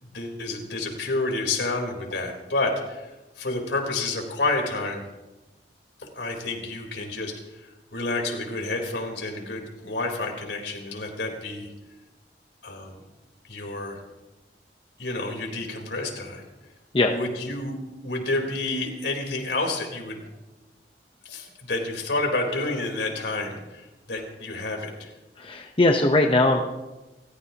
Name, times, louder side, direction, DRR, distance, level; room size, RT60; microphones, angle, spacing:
voice 1, 0.0-3.1 3.4-5.0 6.0-11.7 12.6-13.0 13.5-14.0 15.0-16.5 17.1-17.8 18.0-20.3 21.2-25.1, left 2 dB, 80° left, 1 dB, 4.0 m, -29 dB
voice 2, 25.4-26.6, left 2 dB, 30° left, 3 dB, 0.9 m, -20 dB
29.5 x 14.5 x 3.0 m, 1.1 s
head